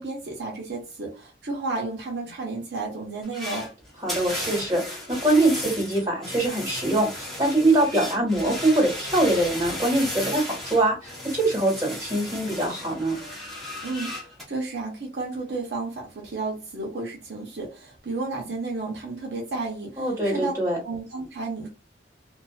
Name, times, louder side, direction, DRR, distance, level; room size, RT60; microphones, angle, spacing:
voice 1, 0.0-3.7 13.8-20.5 20.8-21.7, right 3 dB, 65° right, 0.7 m, -32 dB
sound 1, 3.2-14.4, left 1 dB, ahead, 0.8 m, -35 dB
voice 2, 4.0-13.1 20.0-20.8, right 1 dB, 15° right, 1.3 m, -23 dB
2.4 x 2.4 x 2.3 m
head